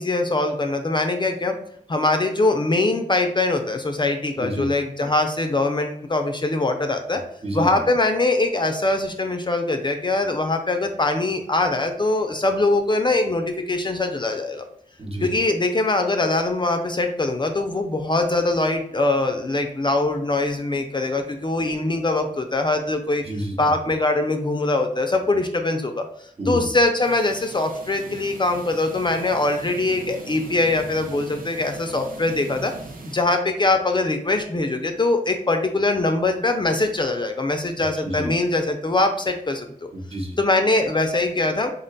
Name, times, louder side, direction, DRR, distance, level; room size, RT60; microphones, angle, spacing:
voice 1, 0.0-1.6 1.9-7.2 7.5-14.6 15.2-23.2 23.6-26.1 26.5-32.7 33.1-39.9 40.4-41.7, left 2 dB, 30° left, 5 dB, 0.4 m, -22 dB
voice 2, 7.1-7.8 15.0-15.3 23.2-23.6 26.4-26.7 37.8-38.3 39.9-40.4, right 1 dB, 40° right, -1 dB, 0.9 m, -29 dB
sound 1, 27.0-33.2, right 3 dB, 70° right, 0.6 m, -40 dB
3.8 x 2.1 x 3.8 m, 0.67 s
wide cardioid pair, 95°, 15 cm